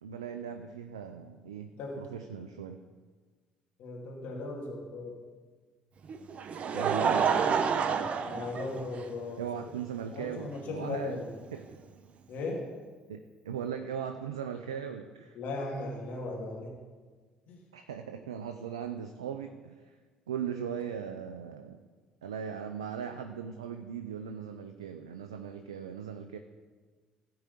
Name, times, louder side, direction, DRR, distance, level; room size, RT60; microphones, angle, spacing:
voice 1, 0.0-2.8 6.7-7.3 9.4-11.2 11.5-11.6 13.1-15.4 17.7-20.0 20.3-21.8 22.2-26.4, right 8 dB, 90° right, 6 dB, 0.5 m, -38 dB
voice 2, 3.8-5.1 8.2-9.4 10.1-11.3 12.3-12.6 15.3-16.7 17.5-17.6, left 2 dB, 65° left, -1 dB, 2.5 m, -37 dB
Laughter, 6.1-9.3 10.1-10.2 11.7-11.8, right 6 dB, 50° right, 0.8 m, -28 dB
14.0 x 4.8 x 8.3 m, 1.4 s
hypercardioid pair, 55°, 3 cm